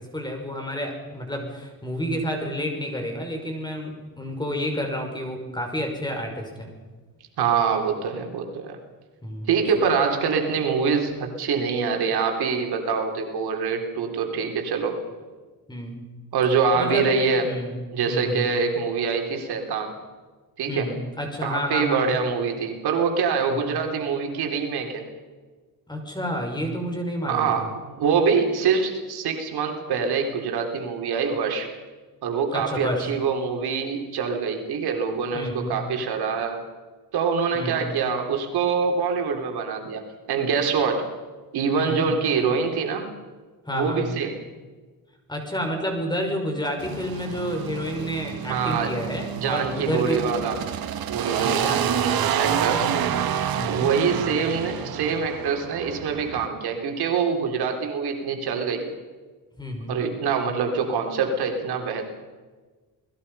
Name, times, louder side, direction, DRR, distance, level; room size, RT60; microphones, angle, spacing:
voice 1, 0.0-6.7 9.2-9.5 15.7-16.0 16.7-17.1 17.4-17.7 18.1-18.5 20.7-22.2 23.5-23.6 25.9-27.7 32.5-33.1 35.3-35.7 37.5-37.8 41.7-42.1 43.7-44.1 45.3-50.3 51.4-52.9 53.5-54.0 59.6-60.0, equal, 10° left, 3 dB, 5.6 m, -30 dB
voice 2, 7.4-8.8 9.5-15.0 16.3-17.6 17.9-19.9 20.6-20.9 21.4-25.1 27.3-27.7 28.0-31.7 32.2-36.6 37.1-40.0 40.3-41.0 41.5-43.1 43.7-44.4 48.5-49.0 49.4-50.6 51.1-51.8 52.4-52.9 53.7-58.9 59.9-62.0, right 5 dB, 85° right, 3 dB, 3.6 m, -25 dB
sound 1, 46.8-56.5, right 9 dB, 70° right, 1.5 m, -28 dB
28.5 x 20.0 x 5.6 m, 1.3 s
cardioid pair, 125°, 37 cm